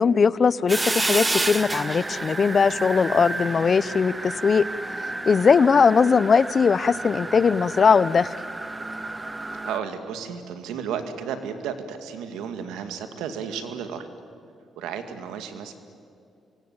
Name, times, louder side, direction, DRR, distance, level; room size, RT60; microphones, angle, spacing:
voice 1, 0.0-4.6 5.3-8.3, left 5 dB, 50° left, 19 dB, 0.7 m, -20 dB
sound 1, 0.7-9.8, right 2 dB, 20° right, 1.8 m, -30 dB
voice 2, 9.6-14.1 14.8-15.7, right 7 dB, 85° right, 8 dB, 2.2 m, -33 dB
27.0 x 24.0 x 8.9 m, 2.5 s
supercardioid pair, 55°, 0 cm